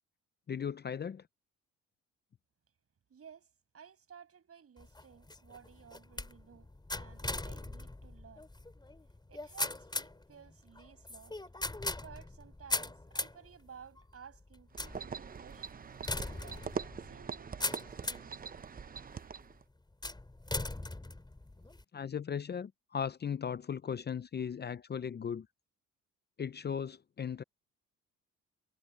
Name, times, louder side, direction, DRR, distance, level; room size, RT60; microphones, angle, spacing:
voice 1, 0.5-1.3 21.9-25.5 26.4-27.4, left 7 dB, 35° left, 0.6 m, -37 dB
voice 2, 3.1-8.5 9.3-11.4 12.0-16.6 17.1-18.5, right 7 dB, 50° right, 7.7 m, -55 dB
sound 1, 4.8-18.4 18.9-19.4 20.0-21.8, left 2 dB, 15° left, 4.6 m, -40 dB
sound 2, 14.7-19.6, right 6 dB, 30° right, 0.7 m, -43 dB
cardioid pair, 90°, 30 cm